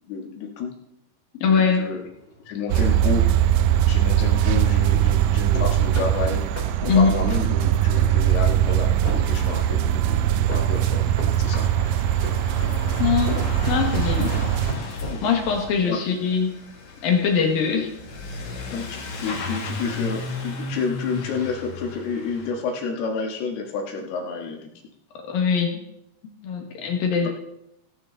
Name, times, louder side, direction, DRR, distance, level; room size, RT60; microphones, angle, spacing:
voice 1, 0.1-0.7 1.5-2.1 2.5-3.3 3.8-6.4 6.8-11.0 11.4-11.7 15.1-15.3 15.9-16.0 18.7-24.7, left 5 dB, 85° left, 1 dB, 3.7 m, -30 dB
voice 2, 1.4-1.8 6.8-7.1 13.0-13.4 13.7-14.3 14.7-14.9 15.2-16.5 17.0-17.9 25.2-25.8 26.4-27.3, left 6 dB, 70° left, 2 dB, 3.3 m, -21 dB
sound 1, 1.9-15.2, left 1 dB, 15° left, 2.5 m, -37 dB
sound 2, 2.7-14.7, right 11 dB, 85° right, 2.0 m, -21 dB
Truck / Accelerating revving vroom, 9.3-22.5, left 3 dB, 50° left, 2.7 m, -36 dB
17.0 x 9.0 x 3.9 m, 0.81 s
omnidirectional pair, 4.5 m